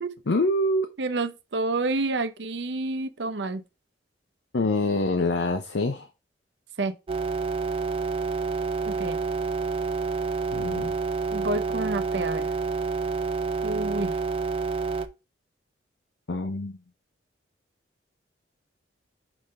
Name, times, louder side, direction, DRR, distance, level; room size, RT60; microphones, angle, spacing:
voice 1, 0.3-0.9 4.5-6.1 10.5-10.9 16.3-16.8, left 2 dB, 75° left, 0.7 m, -25 dB
voice 2, 1.0-3.6 6.8-7.0 8.8-9.2 11.3-12.5 13.6-14.2, right 2 dB, 75° right, 0.7 m, -29 dB
sound 1, 7.1-15.1, right 4 dB, 30° right, 0.5 m, -28 dB
4.9 x 3.8 x 5.4 m
head